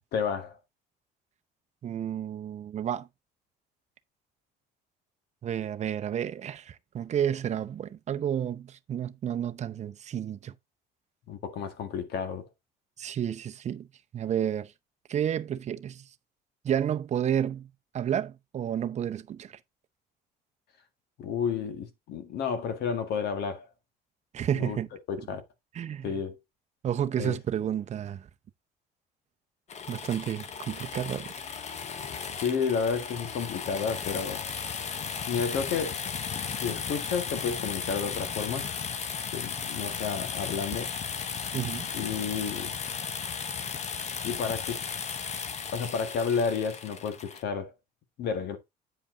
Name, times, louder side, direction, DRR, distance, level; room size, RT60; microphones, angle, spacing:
voice 1, 0.1-0.6 11.3-12.4 21.2-23.7 24.5-24.8 25.1-25.4 26.0-26.4 27.2-27.4 32.4-34.4 35.3-36.0 36.6-38.7 39.3-40.9 41.9-42.7 44.2-44.8 45.7-47.7 48.2-48.6, left 6 dB, 75° left, 1.8 m, -31 dB
voice 2, 1.8-3.1 5.4-10.5 13.0-13.9 14.1-14.7 15.1-16.0 16.6-17.7 17.9-19.6 24.3-24.9 25.7-26.1 26.8-28.3 29.9-31.4 41.5-41.9, right 9 dB, 45° right, 0.7 m, -31 dB
sound 1, 29.7-47.4, left 6 dB, 40° left, 1.0 m, -35 dB
8.7 x 5.2 x 3.8 m
cardioid pair, 110°, 17 cm